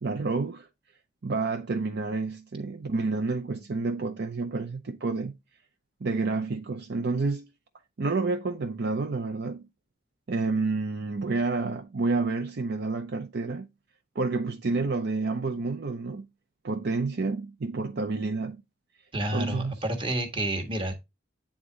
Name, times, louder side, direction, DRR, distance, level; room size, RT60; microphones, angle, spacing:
voice 1, 0.0-0.7 1.2-5.3 6.0-7.5 8.0-9.7 10.3-13.7 14.2-16.3 16.6-18.6 19.3-19.8, right 3 dB, 60° right, 0.6 m, -29 dB
voice 2, 19.1-20.9, right 1 dB, 25° right, 1.4 m, -29 dB
8.8 x 3.7 x 3.9 m
head